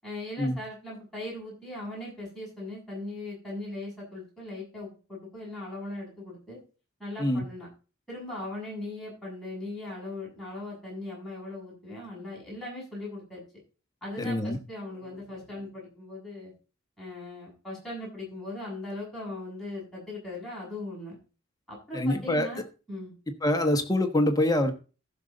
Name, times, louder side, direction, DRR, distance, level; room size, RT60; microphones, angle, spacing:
voice 1, 0.0-6.6 7.0-7.7 8.1-13.4 14.0-16.5 17.0-21.2 21.7-22.6 22.9-23.1, left 2 dB, ahead, -6 dB, 7.5 m, -39 dB
voice 2, 14.2-14.6 21.9-22.5 23.4-24.7, left 1 dB, 20° left, 6 dB, 1.2 m, -25 dB
15.0 x 6.6 x 4.0 m, 0.34 s
head